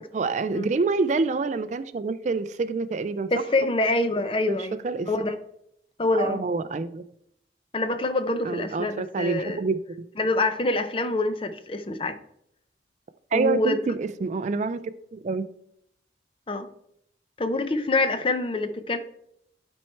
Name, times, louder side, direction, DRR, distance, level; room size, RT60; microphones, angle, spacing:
voice 1, 0.1-3.3 4.5-4.6 4.8-5.1 6.1-7.0 8.4-9.8 13.3-14.8 15.1-15.4, right 4 dB, 40° right, 0.3 m, -27 dB
voice 2, 3.3-4.8 5.1-5.4 6.0-6.4 7.7-9.6 10.2-12.2 13.3-13.8 16.5-16.7 17.4-19.0, left 2 dB, 30° left, 0.6 m, -25 dB
11.5 x 4.5 x 4.4 m
head